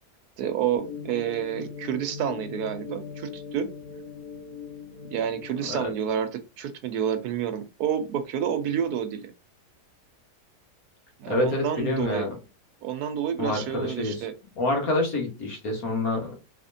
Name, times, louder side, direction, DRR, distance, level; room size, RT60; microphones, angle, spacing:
voice 1, 0.4-3.7 5.1-9.2 11.2-12.3 12.8-14.3, right 9 dB, 75° right, 9 dB, 1.2 m, -29 dB
sound 1, 0.8-5.9, left 5 dB, 85° left, 1.4 m, -40 dB
voice 2, 11.3-12.4 13.4-14.2 14.6-16.4, left 2 dB, 65° left, 1 dB, 1.8 m, -27 dB
4.2 x 3.1 x 2.7 m, 0.28 s
omnidirectional pair, 1.7 m